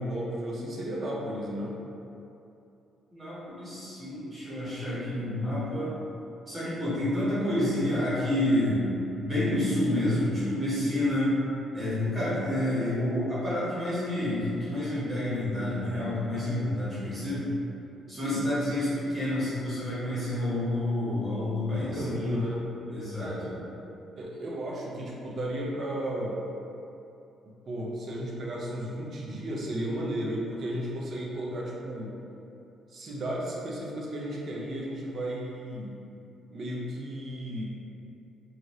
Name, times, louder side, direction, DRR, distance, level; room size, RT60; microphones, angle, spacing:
voice 1, 0.0-1.8 7.1-7.3 18.1-18.5 21.7-22.7 23.2-23.4 24.1-26.4 27.7-32.1 32.9-36.0 36.5-37.6, equal, 40° right, -4 dB, 0.4 m, -34 dB
voice 2, 3.1-6.0 6.5-8.9 9.1-11.4 11.7-17.5 18.1-22.3 22.9-23.5, left 1 dB, 20° right, -11 dB, 1.0 m, -29 dB
2.7 x 2.4 x 3.0 m, 2.8 s
cardioid pair, 175°, 0 cm